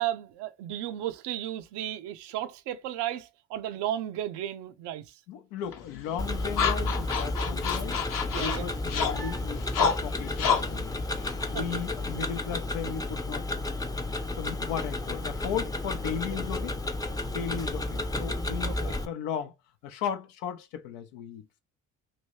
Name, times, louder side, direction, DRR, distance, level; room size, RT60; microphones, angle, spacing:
voice 1, 0.0-5.2 8.3-8.7 11.5-11.8 18.7-18.9, right 12 dB, 75° right, 0.6 m, -34 dB
voice 2, 5.3-8.0 8.3-11.0 11.5-13.5 14.1-16.8 17.2-19.5 19.8-21.6, left 8 dB, 85° left, 0.6 m, -36 dB
sound 1, 5.7-12.2, left 6 dB, 50° left, 0.8 m, -31 dB
Tick-tock, 6.2-19.1, left 2 dB, 10° left, 0.5 m, -32 dB
3.0 x 2.6 x 3.0 m
hypercardioid pair, 50°, 41 cm